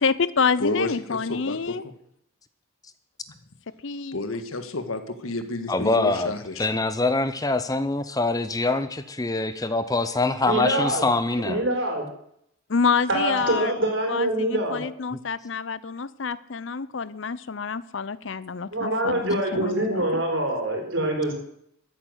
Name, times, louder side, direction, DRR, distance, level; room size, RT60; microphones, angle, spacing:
voice 1, 0.0-1.8 3.8-4.2 12.7-13.7 14.1-20.2, left 5 dB, 60° left, 17 dB, 0.6 m, -27 dB
voice 2, 0.6-1.8 4.1-6.6, left 2 dB, 85° left, 9 dB, 1.7 m, -30 dB
voice 3, 5.7-6.3 6.6-11.6, left 3 dB, 15° left, 12 dB, 0.6 m, -24 dB
voice 4, 10.4-11.1 11.4-12.0 13.1-14.8 18.7-21.3, right 1 dB, 65° right, 2 dB, 4.7 m, -25 dB
13.5 x 10.0 x 8.0 m, 0.73 s
head